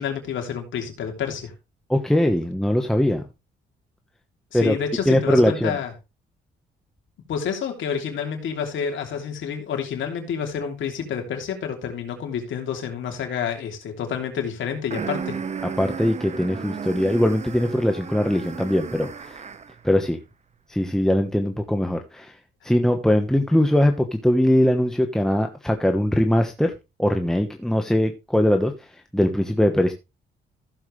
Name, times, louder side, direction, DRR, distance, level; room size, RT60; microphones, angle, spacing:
voice 1, 0.0-1.5 4.5-5.9 7.3-15.4, left 7 dB, 75° left, 3 dB, 3.0 m, -29 dB
voice 2, 1.9-3.2 4.5-4.8 5.1-5.8 15.8-19.4 19.8-20.2 20.7-22.3 22.6-26.7 27.0-28.7 29.1-29.9, left 1 dB, ahead, 5 dB, 1.1 m, -21 dB
sound 1, 14.9-19.8, right 6 dB, 35° right, 1.0 m, -34 dB
15.0 x 7.1 x 3.2 m, 0.26 s
cardioid pair, 90°, 20 cm